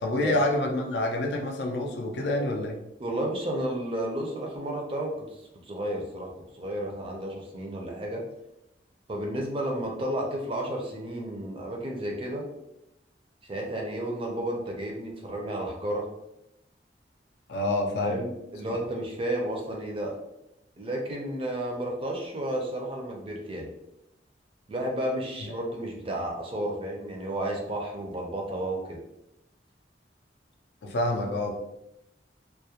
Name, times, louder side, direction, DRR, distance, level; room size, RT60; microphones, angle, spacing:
voice 1, 0.0-2.8 17.5-18.2 18.7-18.8 30.8-31.5, left 1 dB, 65° left, 1 dB, 0.4 m, -27 dB
voice 2, 3.0-5.3 5.7-6.3 6.5-8.2 9.1-12.5 13.4-16.1 18.0-20.2 20.8-23.7 24.7-29.0, right 1 dB, 30° right, 0 dB, 0.4 m, -32 dB
2.3 x 2.0 x 2.8 m, 0.84 s
head